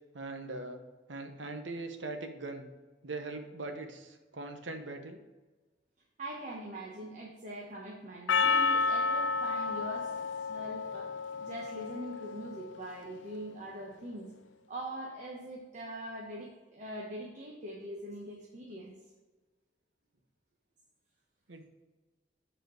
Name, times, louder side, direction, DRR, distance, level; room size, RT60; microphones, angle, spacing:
voice 1, 0.1-0.8 1.1-2.7 3.0-5.2 21.5-21.6, right 3 dB, 85° right, 5 dB, 1.0 m, -41 dB
voice 2, 6.2-10.2 10.5-14.3 14.7-19.0, right 1 dB, 40° right, -2 dB, 1.1 m, -42 dB
Percussion, 8.3-12.8, left 4 dB, 85° left, 0.5 m, -31 dB
8.2 x 4.4 x 5.0 m, 1.2 s
head